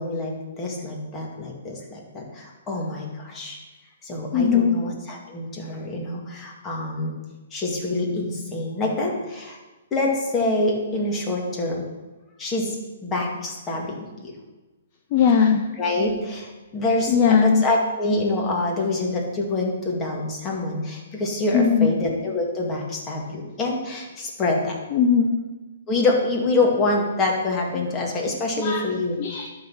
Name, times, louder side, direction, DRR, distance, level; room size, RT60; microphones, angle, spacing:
voice 1, 0.0-3.6 4.0-7.2 7.5-9.6 9.9-11.8 12.4-12.8 13.0-14.3 15.8-24.8 25.9-29.2, left 2 dB, 20° left, -1 dB, 2.1 m, -26 dB
voice 2, 4.3-4.8 15.1-15.6 17.1-17.6 21.5-22.0 24.9-25.3 27.7-27.9 28.6-28.8 29.2-29.5, left 7 dB, 40° left, 3 dB, 0.8 m, -19 dB
11.5 x 4.1 x 6.2 m, 1.2 s
hypercardioid pair, 140°, 0 cm